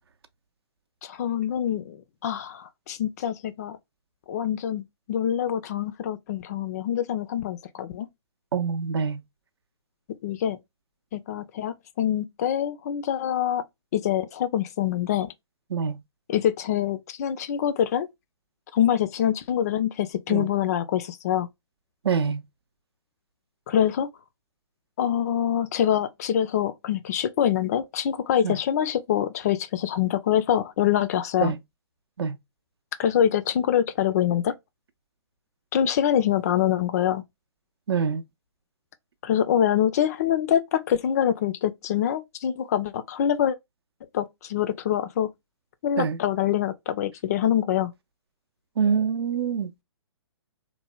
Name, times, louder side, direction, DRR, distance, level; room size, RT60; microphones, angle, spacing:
voice 1, 1.0-3.8 4.3-8.1 10.2-10.6 11.1-13.6 13.9-15.3 16.3-18.1 18.7-21.5 23.7-24.1 25.0-31.5 33.0-34.6 35.7-37.2 39.2-43.6 44.1-45.3 45.8-47.9, left 10 dB, 35° left, 0.4 m, -25 dB
voice 2, 8.5-9.2 15.7-16.0 20.3-20.5 22.0-22.4 28.4-28.6 31.4-31.6 32.2-32.4 37.9-38.2 46.0-46.2 48.8-49.7, right 6 dB, 60° right, 0.5 m, -25 dB
3.1 x 2.1 x 2.2 m
figure-of-eight pair, 130°, 15 cm